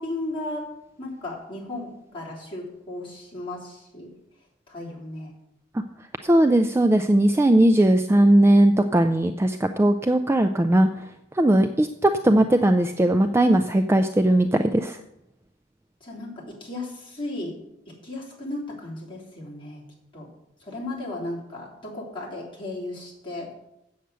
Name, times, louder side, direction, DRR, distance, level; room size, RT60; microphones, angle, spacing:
voice 1, 0.0-4.1 4.7-5.4 16.0-17.6 17.9-19.8 20.1-20.3 20.6-23.5, left 2 dB, 25° left, -5 dB, 3.2 m, -35 dB
voice 2, 6.2-10.9 11.3-15.0, right 1 dB, 15° right, 6 dB, 0.3 m, -19 dB
7.9 x 7.6 x 6.8 m, 0.85 s
head